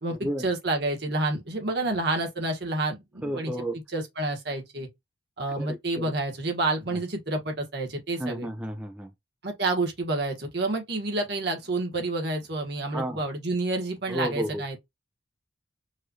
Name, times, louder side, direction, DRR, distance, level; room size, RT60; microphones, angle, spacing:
voice 1, 0.0-3.5 3.9-4.9 5.4-8.5 9.4-14.8, right 2 dB, 55° right, 1.4 m, -29 dB
voice 2, 3.2-3.8 5.6-6.0 6.9-7.0 8.2-9.1 12.9-13.2 14.1-14.6, right 1 dB, 5° right, 0.4 m, -32 dB
4.8 x 2.5 x 2.8 m
head